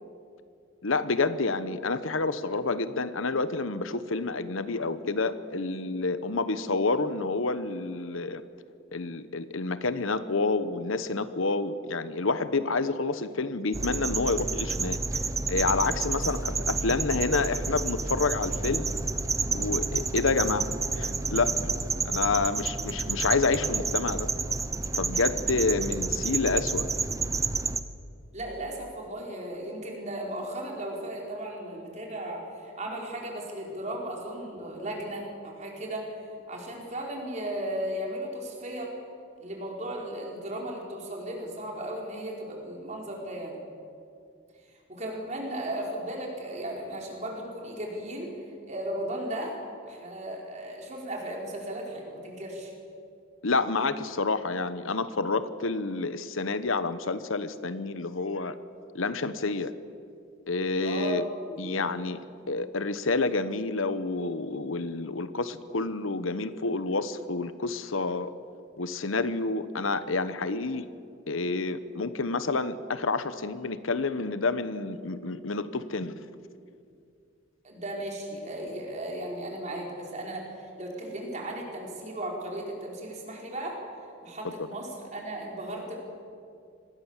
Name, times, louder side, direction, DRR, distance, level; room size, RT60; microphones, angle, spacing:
voice 1, 0.8-8.4 8.9-15.0 15.5-18.9 19.5-21.5 22.0-24.3 24.9-26.9 53.4-58.5 58.9-59.7 60.5-61.2 61.6-62.2 62.5-68.3 68.8-70.9 71.3-76.2, left 3 dB, 80° left, 13 dB, 1.1 m, -29 dB
sound 1, 13.7-27.8, right 4 dB, 15° right, 0.7 m, -30 dB
voice 2, 28.3-36.2 36.5-38.9 39.4-43.6 44.9-48.3 48.7-49.6 49.9-52.7 60.8-61.2 61.5-61.9 77.6-83.8 84.2-86.0, right 1 dB, 35° right, -1 dB, 5.0 m, -36 dB
26.0 x 20.0 x 7.4 m, 2.4 s
head